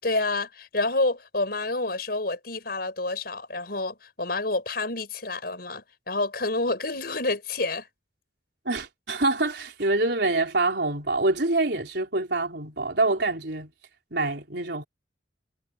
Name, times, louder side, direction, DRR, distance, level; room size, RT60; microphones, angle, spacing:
voice 1, 0.0-7.9, left 2 dB, 60° left, 5.6 m, -28 dB
voice 2, 8.6-13.7 14.1-14.8, right 2 dB, 65° right, 4.5 m, -25 dB
head